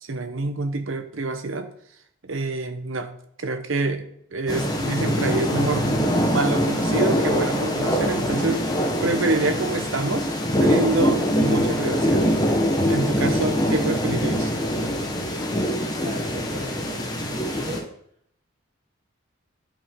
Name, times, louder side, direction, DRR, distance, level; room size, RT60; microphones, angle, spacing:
voice 1, 0.0-1.7 2.2-3.1 3.4-6.0 6.3-8.6 9.0-10.3 10.6-12.3 12.8-14.5, right 2 dB, 75° right, 8 dB, 0.9 m, -26 dB
sound 1, 4.5-17.8, equal, 20° left, 1.1 m, -23 dB
voice 2, 16.0-17.9, right 1 dB, 35° right, -1 dB, 1.5 m, -36 dB
11.5 x 5.3 x 3.7 m, 0.68 s
head